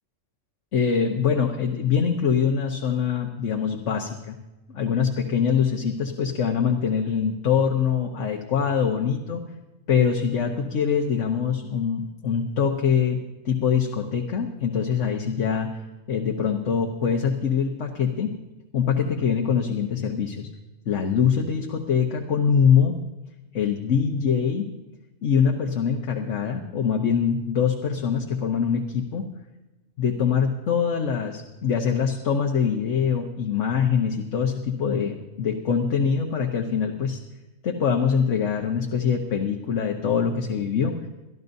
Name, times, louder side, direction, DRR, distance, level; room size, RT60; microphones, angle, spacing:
voice 1, 0.7-4.4 4.7-9.4 9.9-15.7 16.1-18.3 18.7-20.5 20.8-23.0 23.5-24.7 25.2-29.3 30.0-37.2 37.6-41.0, left 7 dB, 70° left, 2 dB, 1.4 m, -23 dB
23.0 x 13.5 x 2.7 m, 1.1 s
omnidirectional pair, 1.3 m